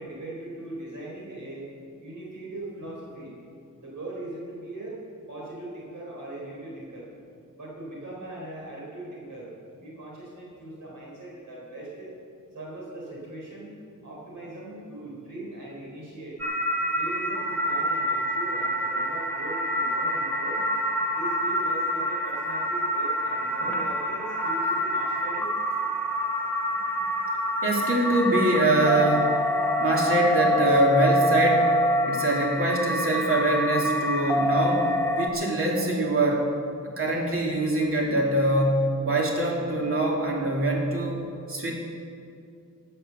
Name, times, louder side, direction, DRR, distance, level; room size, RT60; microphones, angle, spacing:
voice 1, 0.0-1.7 2.0-3.3 3.8-5.0 5.3-7.1 7.5-9.5 9.8-12.1 12.5-13.8 14.0-16.4 16.9-20.7 21.1-25.5, right 2 dB, 65° right, -5 dB, 3.9 m, -40 dB
sound 1, 16.4-35.3, equal, 5° left, 1.1 m, -26 dB
voice 2, 27.6-29.4 29.8-31.7 32.1-34.9 35.2-36.5 36.8-41.2 41.5-41.7, right 1 dB, 40° right, -2 dB, 2.8 m, -24 dB
18.0 x 7.9 x 6.9 m, 2.4 s
wide cardioid pair, 140°, 33 cm